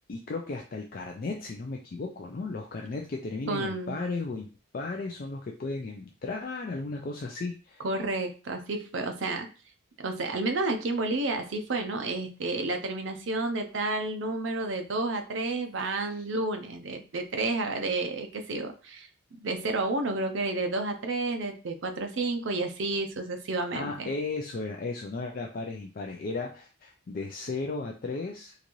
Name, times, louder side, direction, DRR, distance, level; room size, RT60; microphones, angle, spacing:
voice 1, 0.1-7.8 16.2-16.3 23.7-28.5, left 3 dB, 45° left, 1 dB, 0.4 m, -35 dB
voice 2, 3.5-4.0 7.8-9.5 10.0-19.1 19.4-24.1, right 2 dB, 65° right, 5 dB, 0.6 m, -31 dB
3.9 x 2.5 x 3.0 m, 0.35 s
head